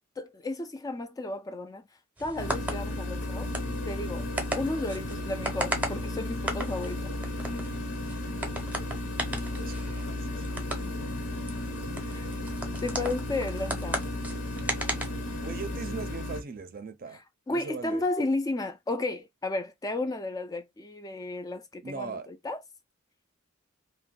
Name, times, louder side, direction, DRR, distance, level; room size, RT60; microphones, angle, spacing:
voice 1, 0.2-1.8 2.2-3.5 3.9-4.3 4.6-7.1 12.1-12.3 12.8-14.0 17.1-22.6, left 2 dB, 15° left, 0.3 m, -33 dB
sound 1, 2.2-15.8, right 1 dB, 5° right, 0.7 m, -37 dB
sound 2, 2.4-16.4, left 1 dB, 75° left, 0.8 m, -34 dB
voice 2, 9.4-10.6 15.4-17.2 17.5-18.1 21.8-22.3, right 5 dB, 45° right, 0.5 m, -39 dB
2.6 x 2.1 x 3.5 m
head